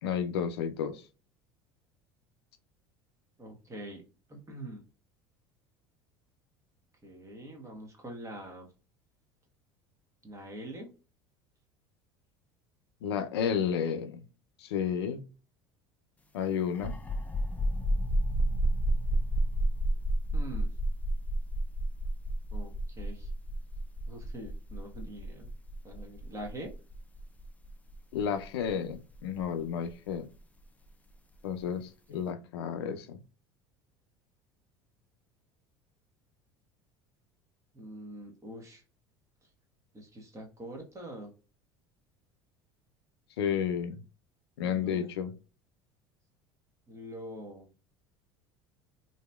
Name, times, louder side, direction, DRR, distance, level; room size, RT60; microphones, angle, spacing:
voice 1, 0.0-1.0 13.0-14.2 14.6-15.3 16.3-17.0 28.1-30.3 31.4-33.2 43.4-44.0 44.6-45.3, left 7 dB, 85° left, 9 dB, 0.4 m, -32 dB
voice 2, 3.4-4.0 4.3-4.9 7.0-8.7 10.2-10.9 20.3-20.7 22.5-23.3 24.1-25.5 25.8-26.7 32.1-32.2 37.7-38.8 39.9-41.3 44.6-45.1 46.9-47.7, right 1 dB, 25° right, 2 dB, 1.2 m, -44 dB
sound 1, 16.7-30.1, right 1 dB, 10° left, 0.4 m, -31 dB
2.9 x 2.7 x 2.2 m, 0.34 s
hypercardioid pair, 80°, 13 cm